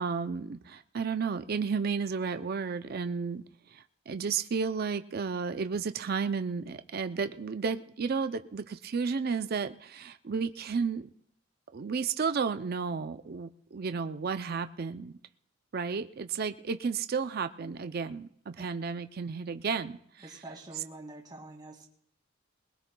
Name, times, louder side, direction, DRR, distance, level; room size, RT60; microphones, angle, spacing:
voice 1, 0.0-3.4 3.7-11.1 11.7-15.1 15.7-20.0, right 5 dB, 50° right, 0.4 m, -32 dB
voice 2, 20.2-21.9, right 2 dB, 20° right, 2.2 m, -46 dB
21.0 x 20.5 x 2.3 m
head